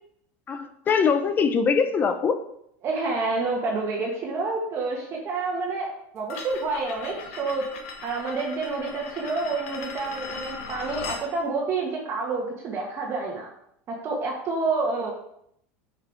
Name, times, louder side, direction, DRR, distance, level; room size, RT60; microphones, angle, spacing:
voice 1, 0.5-2.4, left 5 dB, 25° left, 9 dB, 0.8 m, -22 dB
voice 2, 2.8-7.7 8.0-13.5 13.9-15.1, right 3 dB, 35° right, -1 dB, 1.5 m, -28 dB
sound 1, 6.3-11.3, left 5 dB, 80° left, 1.4 m, -38 dB
6.8 x 5.9 x 4.7 m, 0.73 s
supercardioid pair, 130°, 7 cm